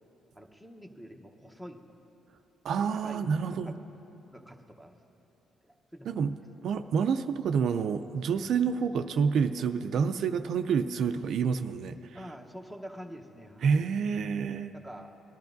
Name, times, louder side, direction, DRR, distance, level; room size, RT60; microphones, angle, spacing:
voice 1, 0.3-2.0 2.8-3.7 4.3-4.9 5.6-6.3 12.1-13.8 14.7-15.1, equal, ahead, 4 dB, 0.9 m, -46 dB
voice 2, 2.6-3.7 6.1-6.3 6.6-12.2 13.6-14.7, right 6 dB, 70° right, 9 dB, 0.3 m, -28 dB
19.5 x 12.0 x 2.6 m, 3.0 s
cardioid pair, 90°, 0 cm